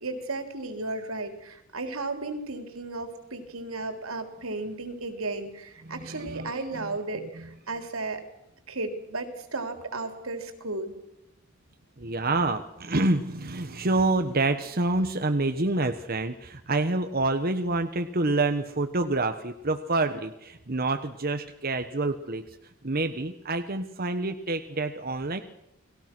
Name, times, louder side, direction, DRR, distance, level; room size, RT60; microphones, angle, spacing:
voice 1, 0.0-8.2 8.7-10.9, right 2 dB, 80° right, 6 dB, 3.7 m, -34 dB
voice 2, 5.8-6.9 12.0-22.4 22.8-25.4, right 2 dB, 45° right, 7 dB, 1.2 m, -27 dB
30.0 x 20.5 x 6.2 m, 0.85 s
head